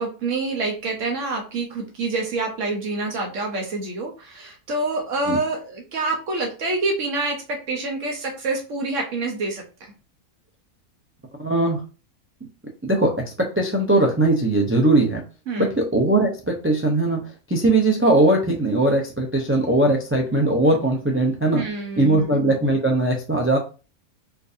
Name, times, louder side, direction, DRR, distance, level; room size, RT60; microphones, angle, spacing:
voice 1, 0.0-9.6 15.5-15.7 21.5-22.4, right 3 dB, 70° right, 1 dB, 1.1 m, -27 dB
voice 2, 11.4-11.8 12.8-13.1 13.4-15.2 15.6-21.6 22.0-23.6, right 2 dB, 20° right, 0 dB, 0.3 m, -20 dB
4.5 x 2.6 x 2.5 m, 0.33 s
omnidirectional pair, 1.3 m